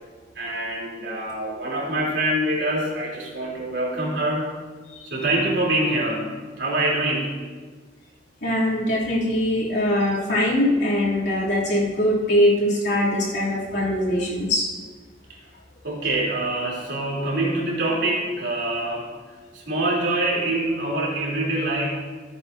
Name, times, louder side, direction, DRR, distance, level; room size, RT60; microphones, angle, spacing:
voice 1, 0.3-4.5 5.0-7.4 15.8-19.1 19.5-21.9, right 1 dB, 75° right, -4 dB, 3.3 m, -25 dB
voice 2, 8.4-14.7, left 1 dB, 70° left, -6 dB, 2.8 m, -22 dB
15.0 x 8.4 x 2.7 m, 1.4 s
head